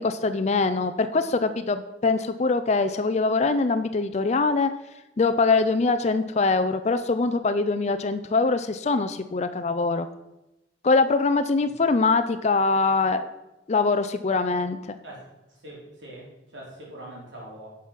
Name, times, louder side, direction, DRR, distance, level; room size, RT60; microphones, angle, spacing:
voice 1, 0.0-4.7 5.2-10.1 10.8-13.3 13.7-15.0, left 3 dB, 35° left, 9 dB, 0.4 m, -23 dB
voice 2, 15.6-16.3 16.5-17.7, right 1 dB, 85° right, -4 dB, 3.8 m, -42 dB
10.0 x 6.2 x 5.8 m, 0.96 s
head